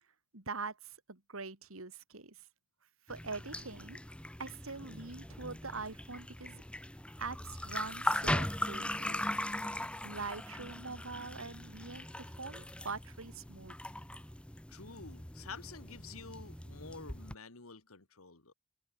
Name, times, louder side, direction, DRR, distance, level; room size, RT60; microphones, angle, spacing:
voice 1, 0.3-2.5 3.1-4.0 4.4-6.6 7.2-9.3 10.0-13.7, right 4 dB, 75° right, 2.6 m, -44 dB
sound 1, 3.1-17.3, left 1 dB, 5° left, 1.2 m, -40 dB
voice 2, 14.7-18.5, left 4 dB, 90° left, 2.1 m, -49 dB
head